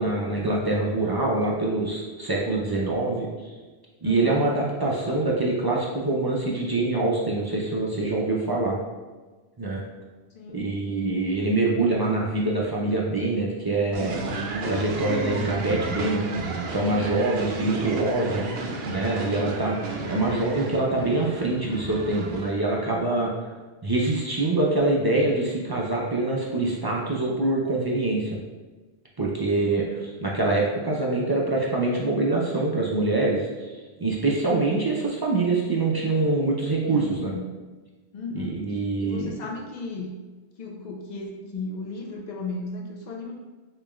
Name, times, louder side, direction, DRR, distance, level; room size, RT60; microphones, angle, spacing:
voice 1, 0.0-3.3 4.0-8.8 9.6-9.8 10.5-14.2 14.5-18.4 18.9-23.3 23.8-28.3 29.2-33.7 34.0-37.3 38.3-39.3, right 2 dB, 35° right, -4 dB, 0.3 m, -25 dB
voice 2, 4.0-4.4 10.3-10.7 36.8-37.5 38.1-38.6 39.0-40.2 40.6-43.4, left 3 dB, 55° left, 1 dB, 0.5 m, -35 dB
sound 1, 13.9-22.5, right 3 dB, 70° right, 0.8 m, -32 dB
4.9 x 3.0 x 2.3 m, 1.3 s
omnidirectional pair, 1.1 m